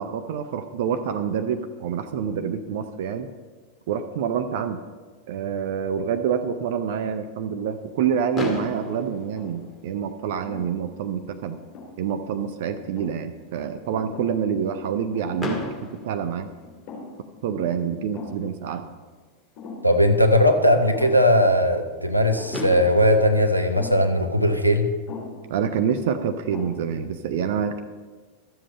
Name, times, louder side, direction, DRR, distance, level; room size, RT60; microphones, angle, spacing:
voice 1, 0.0-3.3 3.9-4.8 5.3-11.6 12.0-16.5 17.4-18.9 25.5-27.8, right 7 dB, 55° right, 9 dB, 0.6 m, -27 dB
sound 1, 8.0-8.6 9.1-9.9 10.4-10.7 11.5-12.2 12.7-13.2 13.9-14.5 14.7-14.8 15.1-15.6 16.0-16.1 16.6-17.3 17.6-17.7 18.1-18.5 19.6-20.0 20.9-21.4 22.4-22.7 23.7-24.1 25.1-25.5 26.1-26.2 26.5-27.0, left 3 dB, 40° left, 3.5 m, -41 dB
Fireworks, 8.3-10.4 11.2-11.3 11.5-11.7 12.0-12.1 15.4-17.2 18.9-19.0 22.1-22.2 22.5-24.8, left 2 dB, 10° left, 1.9 m, -34 dB
voice 2, 19.8-24.9, equal, 90° right, 5 dB, 0.9 m, -19 dB
13.0 x 7.6 x 5.5 m, 1.4 s
figure-of-eight pair, 90°, 0 cm